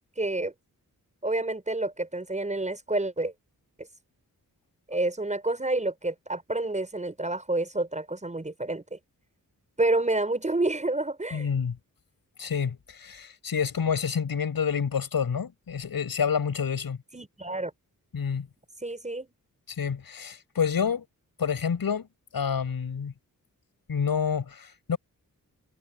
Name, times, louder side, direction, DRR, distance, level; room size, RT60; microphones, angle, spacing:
voice 1, 0.2-0.5 1.2-3.3 4.9-9.0 9.8-11.5 17.1-17.7 18.8-19.3, right 2 dB, 20° right, 6.7 m, -29 dB
voice 2, 11.3-11.8 12.4-17.0 18.1-18.5 19.7-21.0 21.4-22.1 22.3-23.1 23.9-25.0, left 7 dB, 80° left, 7.5 m, -28 dB
wide cardioid pair, 150°, 35 cm